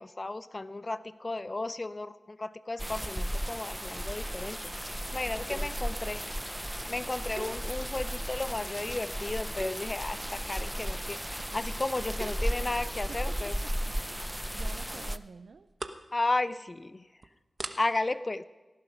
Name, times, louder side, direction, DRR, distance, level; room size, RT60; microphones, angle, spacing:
voice 1, 0.0-6.2 6.9-13.6 16.1-17.1 17.8-18.4, left 2 dB, 40° left, 15 dB, 0.5 m, -34 dB
sound 1, 2.8-15.2, equal, 5° right, 0.6 m, -35 dB
voice 2, 5.4-5.7 13.1-13.5 13.8-15.7, right 5 dB, 85° right, 9 dB, 0.5 m, -49 dB
sound 2, 5.5-5.9 7.3-8.1 8.6-8.9 9.5-10.0 12.0-12.6 14.0-14.3 14.6-14.7 15.1-15.2 15.6-16.1 16.5-16.7 17.2-17.3 17.6-17.8, right 2 dB, 55° right, 1.1 m, -42 dB
18.5 x 11.5 x 6.0 m, 1.2 s
cardioid pair, 45°, 0 cm